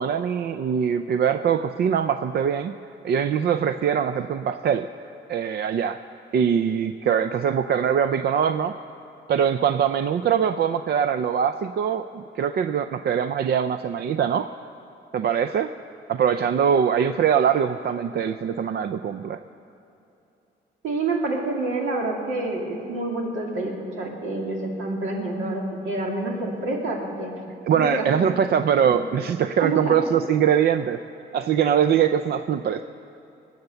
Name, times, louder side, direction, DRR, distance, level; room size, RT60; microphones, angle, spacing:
voice 1, 0.0-2.7 3.0-4.9 5.3-6.0 6.3-8.8 9.3-14.5 15.1-15.7 16.1-19.4 27.6-31.0 31.3-32.8, right 8 dB, 55° right, 10 dB, 0.5 m, -22 dB
voice 2, 20.8-27.3 27.7-28.4 28.9-29.0 29.6-30.0, right 2 dB, 80° right, 0 dB, 2.5 m, -28 dB
20.5 x 8.0 x 6.8 m, 2.9 s
cardioid pair, 90°, 20 cm